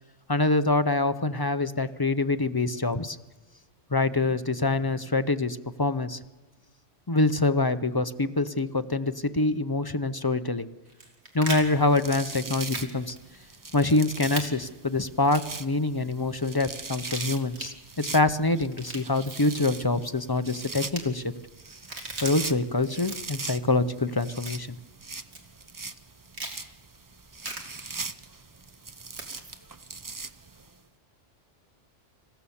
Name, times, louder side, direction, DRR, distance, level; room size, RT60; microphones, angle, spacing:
voice 1, 0.3-3.2 3.9-6.2 7.1-10.7 11.3-13.1 13.7-21.3 22.2-24.8, left 2 dB, 25° left, 11 dB, 0.5 m, -25 dB
sound 1, 10.9-11.6 12.7-12.9 13.2-13.3 14.4-14.5 15.2-15.7 16.9-17.7 18.6-19.6 20.8-21.0 21.7-22.5 23.0-23.4 24.5-24.8 25.3-25.4 26.3-26.6 27.4-27.6 29.1-29.6, right 2 dB, 65° right, 2.7 m, -38 dB
sound 2, 11.6-30.8, right 3 dB, 25° right, 0.4 m, -41 dB
26.0 x 15.5 x 7.2 m, 1.1 s
omnidirectional pair, 1.2 m